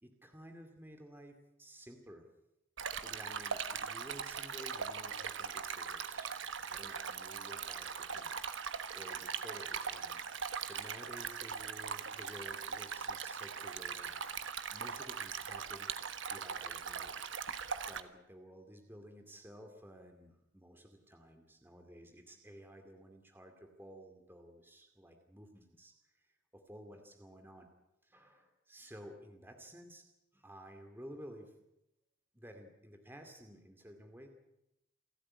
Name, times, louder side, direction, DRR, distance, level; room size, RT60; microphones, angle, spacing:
voice 1, 0.0-2.2 3.0-6.3 6.7-14.3 14.7-15.9 16.3-27.7 28.0-30.0 30.3-31.5 32.3-34.3, equal, 10° right, 5 dB, 2.3 m, -54 dB
Stream, 2.8-18.0, right 6 dB, 65° right, 1.3 m, -40 dB
28.5 x 12.5 x 9.7 m, 0.87 s
head